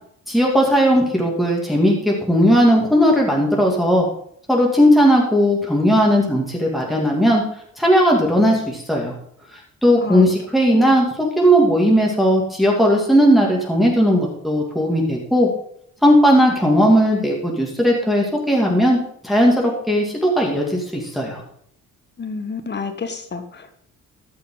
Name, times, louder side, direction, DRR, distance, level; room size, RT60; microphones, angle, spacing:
voice 1, 0.3-4.1 4.5-7.4 7.8-9.1 9.8-15.5 16.0-19.0 19.2-21.4, equal, ahead, -2 dB, 2.5 m, -17 dB
voice 2, 22.2-23.7, left 5 dB, 35° left, 9 dB, 1.3 m, -29 dB
13.5 x 5.7 x 3.9 m, 0.67 s
cardioid pair, 90°, 30 cm